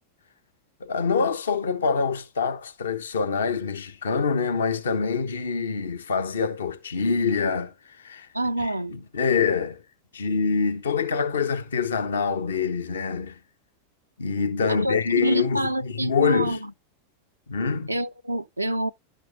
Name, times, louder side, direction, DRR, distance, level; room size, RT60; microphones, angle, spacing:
voice 1, 0.8-8.3 8.6-9.8 10.1-13.4 14.2-16.6 17.5-17.9, left 5 dB, 65° left, 0.9 m, -25 dB
voice 2, 8.3-8.9 14.7-16.7 17.9-18.9, right 1 dB, 85° right, 0.4 m, -27 dB
11.5 x 5.1 x 3.9 m
figure-of-eight pair, 90°, 0 cm